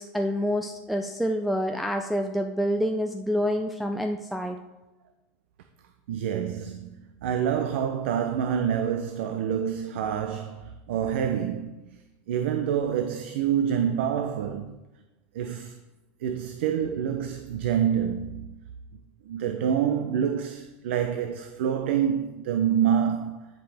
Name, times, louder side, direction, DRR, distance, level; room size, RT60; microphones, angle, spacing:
voice 1, 0.0-4.6, equal, ahead, 0.4 m, -27 dB
voice 2, 6.1-12.0 12.3-14.7 15.3-15.8 16.2-18.5 19.2-23.5, right 8 dB, 80° right, 0.6 m, -27 dB
10.5 x 5.2 x 3.4 m
supercardioid pair, 140°, 6 cm